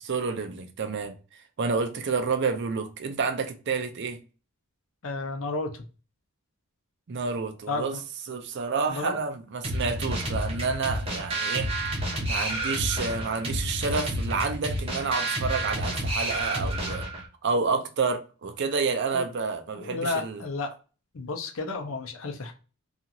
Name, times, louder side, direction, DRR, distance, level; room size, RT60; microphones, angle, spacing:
voice 1, 0.0-1.1 1.6-4.2 7.1-8.0 8.3-11.7 12.3-17.0 17.4-20.4, right 4 dB, 55° right, 0.5 m, -29 dB
voice 2, 5.0-5.7 7.7-8.0 8.9-9.2 19.1-19.2 19.8-20.7 21.1-22.5, left 3 dB, 70° left, 0.6 m, -32 dB
sound 1, 9.6-17.3, right 1 dB, 25° right, 0.8 m, -30 dB
2.9 x 2.4 x 2.4 m
head